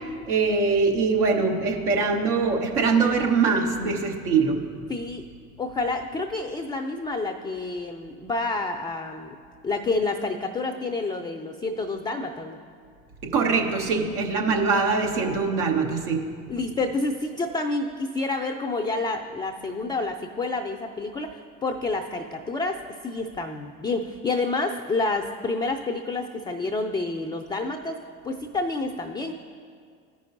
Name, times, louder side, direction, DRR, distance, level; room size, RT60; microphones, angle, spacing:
voice 1, 0.3-4.6 13.2-16.2, right 4 dB, 80° right, 1 dB, 1.2 m, -23 dB
voice 2, 4.9-5.3 5.6-9.4 9.6-12.6 16.5-29.3, left 3 dB, 10° left, 5 dB, 0.3 m, -29 dB
14.0 x 5.3 x 2.6 m, 2.1 s
hypercardioid pair, 65°, 44 cm